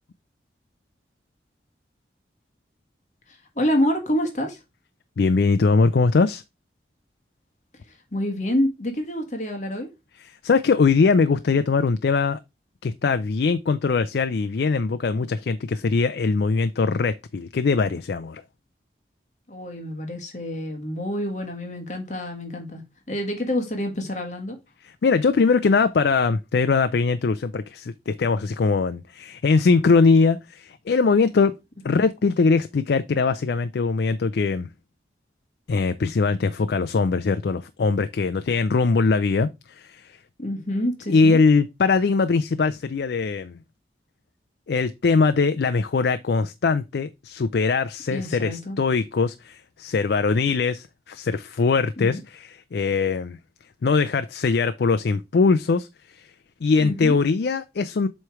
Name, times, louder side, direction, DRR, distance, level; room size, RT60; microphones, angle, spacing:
voice 1, 3.3-4.6 8.1-9.9 19.5-22.8 23.1-24.6 31.9-32.0 40.4-41.4 48.1-48.8 52.0-52.2 56.8-57.2, left 1 dB, 40° left, 1.6 m, -27 dB
voice 2, 5.2-6.4 10.2-12.4 12.8-18.4 24.8-31.5 31.8-34.7 35.7-40.2 41.1-43.6 44.7-53.4 53.8-55.9 56.1-56.3 56.6-58.1, left 4 dB, 70° left, 0.4 m, -21 dB
7.7 x 3.2 x 4.7 m
head